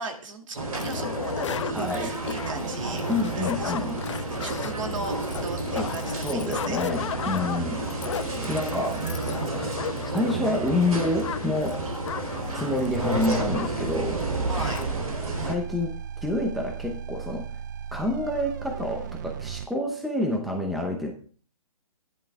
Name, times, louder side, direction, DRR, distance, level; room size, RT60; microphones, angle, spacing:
voice 1, 0.0-3.1 3.4-6.8 7.4-7.7 11.8-12.1 14.5-14.8 17.3-17.4, right 3 dB, 60° right, 4 dB, 2.3 m, -37 dB
sound 1, 0.5-15.5, right 2 dB, 90° right, 3.8 m, -31 dB
sound 2, 0.8-14.0 14.2-14.3 14.5-14.9, left 9 dB, 55° left, 0.6 m, -35 dB
voice 2, 1.7-2.1 3.1-4.0 5.8-5.9 6.2-7.9 8.5-9.0 10.1-11.8 12.5-14.2 15.4-17.5 17.9-21.1, left 1 dB, ahead, 1 dB, 0.8 m, -28 dB
sound 3, 12.8-19.7, right 8 dB, 30° right, 0.3 m, -36 dB
14.5 x 10.5 x 2.4 m, 0.41 s
hypercardioid pair, 145°, 18 cm